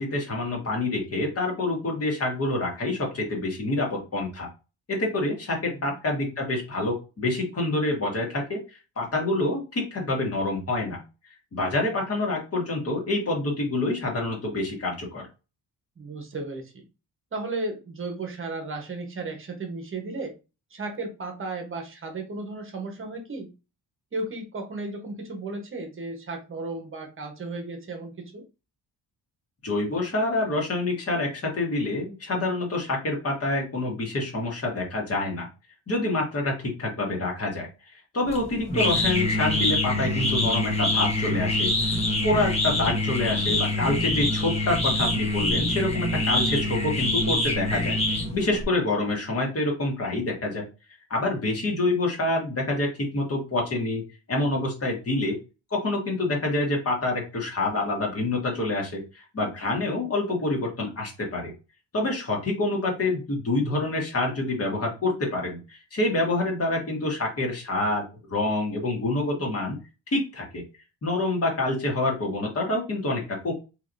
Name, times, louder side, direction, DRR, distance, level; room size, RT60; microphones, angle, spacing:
voice 1, 0.0-4.5 4.9-11.0 11.5-15.2 29.6-35.5 35.9-50.6 51.1-54.0 54.3-55.4 55.7-61.5 61.9-68.0 68.3-69.8 70.1-70.6 71.0-73.5, left 2 dB, 35° left, 1.6 m, -27 dB
voice 2, 16.0-16.8 17.3-20.4 20.7-23.5 24.1-28.5 69.2-69.5, right 2 dB, 30° right, 1.1 m, -34 dB
sound 1, 38.3-48.6, left 1 dB, 15° left, 1.0 m, -25 dB
4.8 x 3.1 x 2.6 m
wide cardioid pair, 175°, 42 cm